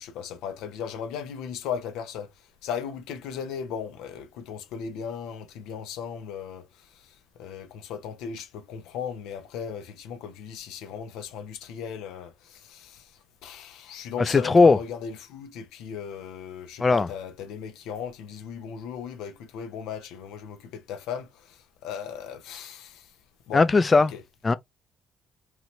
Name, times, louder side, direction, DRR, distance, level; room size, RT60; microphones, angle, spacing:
voice 1, 0.0-2.3 2.6-23.1 23.5-23.6 24.1-24.2, left 7 dB, 75° left, 0.6 m, -37 dB
voice 2, 14.3-14.8 16.8-17.1 23.5-24.1 24.4-24.5, left 3 dB, 30° left, 0.4 m, -18 dB
3.0 x 2.5 x 3.1 m
hypercardioid pair, 55°, 0 cm